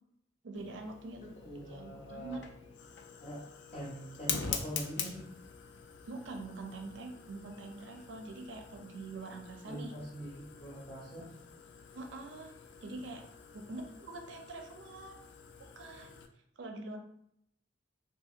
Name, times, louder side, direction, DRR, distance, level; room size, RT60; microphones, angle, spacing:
voice 1, 0.4-1.2 1.7-2.4 6.1-9.9 11.9-12.5 12.8-13.2 13.5-15.2 15.7-16.2 16.6-17.0, right 2 dB, 80° right, 4 dB, 0.5 m, -44 dB
Fire, 0.5-16.3, left 6 dB, 75° left, 0.3 m, -45 dB
voice 2, 1.2-2.4 3.2-3.4 3.7-5.3 9.6-11.3, equal, 35° left, -5 dB, 0.6 m, -43 dB
2.7 x 2.7 x 2.4 m, 0.73 s
head